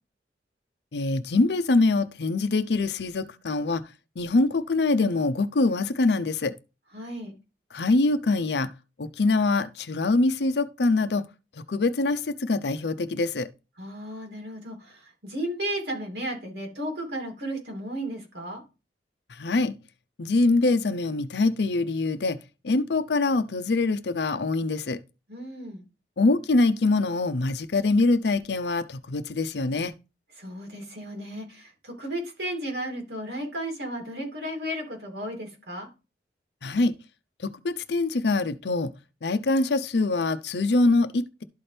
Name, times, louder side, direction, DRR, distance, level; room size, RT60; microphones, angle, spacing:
voice 1, 0.9-3.8 4.2-6.5 7.7-8.7 9.0-11.2 11.6-13.5 19.3-19.7 20.2-22.4 22.6-25.0 26.2-29.9 36.6-36.9 37.4-38.9 39.2-41.4, left 3 dB, 75° left, 0.6 m, -24 dB
voice 2, 6.9-7.3 13.8-18.6 25.3-25.9 30.4-35.9, right 1 dB, 80° right, 2.8 m, -34 dB
12.0 x 4.3 x 3.3 m
head